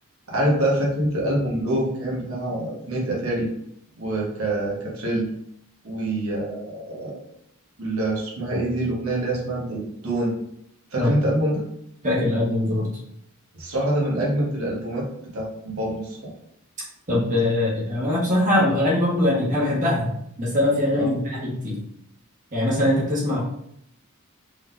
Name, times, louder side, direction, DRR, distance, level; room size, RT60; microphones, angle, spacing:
voice 1, 0.3-3.5 3.9-5.3 5.8-7.2 7.8-10.3 10.9-11.6 13.6-15.1 15.3-16.3 20.9-21.1, right 1 dB, 80° right, -4 dB, 1.5 m, -25 dB
voice 2, 12.0-12.9 17.1-20.1 20.4-21.8 22.5-23.4, left 1 dB, 35° right, -5 dB, 1.5 m, -22 dB
4.7 x 3.7 x 2.7 m, 0.74 s
head